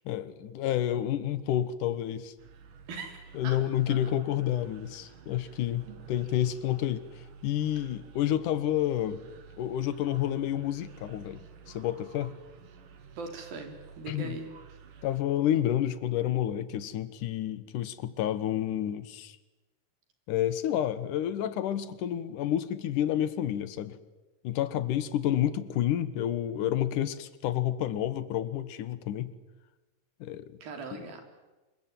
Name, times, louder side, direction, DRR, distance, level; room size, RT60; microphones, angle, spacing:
voice 1, 0.1-2.3 3.3-7.0 7.4-9.2 9.6-12.3 14.1-14.4 15.0-19.4 20.3-24.0 24.4-29.3 30.2-30.4 30.9-31.0, left 11 dB, 70° left, 14 dB, 2.6 m, -29 dB
sound 1, 2.4-15.2, right 6 dB, 65° right, 3.3 m, -51 dB
voice 2, 2.9-3.6 3.9-4.1 5.9-6.0 13.2-14.5 30.6-31.2, right 4 dB, 85° right, 5 dB, 5.4 m, -40 dB
26.0 x 22.0 x 9.2 m, 1.1 s
omnidirectional pair, 4.1 m